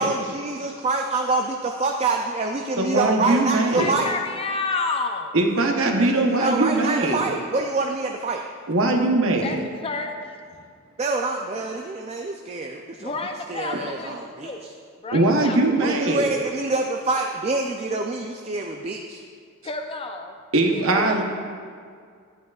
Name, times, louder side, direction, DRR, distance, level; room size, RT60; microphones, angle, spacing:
voice 1, 0.0-4.1 6.0-8.4 11.0-13.2 13.5-14.7 15.8-19.2, right 3 dB, 30° right, 3 dB, 0.3 m, -26 dB
voice 2, 2.8-3.9 5.3-7.2 8.7-9.6 15.1-16.3 20.5-21.2, right 2 dB, 65° right, 2 dB, 0.9 m, -21 dB
voice 3, 3.8-5.3 9.4-9.6 9.8-10.2 13.0-14.1 14.4-14.6 15.0-15.6 19.6-20.3 20.7-21.2, left 3 dB, 25° left, 5 dB, 0.5 m, -29 dB
11.0 x 9.1 x 2.4 m, 2.1 s
head